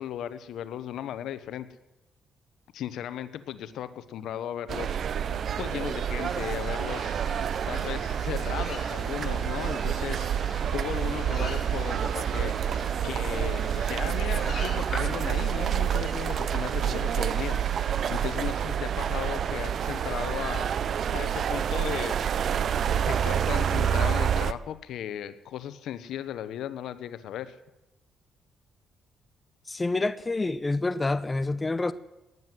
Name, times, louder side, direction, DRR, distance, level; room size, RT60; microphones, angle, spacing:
voice 1, 0.0-1.7 2.7-5.3 5.6-7.4 7.7-10.3 10.7-12.7 13.0-22.2 23.1-27.6, left 10 dB, 80° left, 13 dB, 1.1 m, -36 dB
sound 1, 4.7-24.5, right 8 dB, 60° right, 0.7 m, -28 dB
sound 2, 6.2-18.4, left 4 dB, 40° left, 5.7 m, -45 dB
voice 2, 29.7-31.9, left 2 dB, 20° left, 14 dB, 0.7 m, -27 dB
19.0 x 9.6 x 7.6 m, 0.99 s
cardioid pair, 90°, 0 cm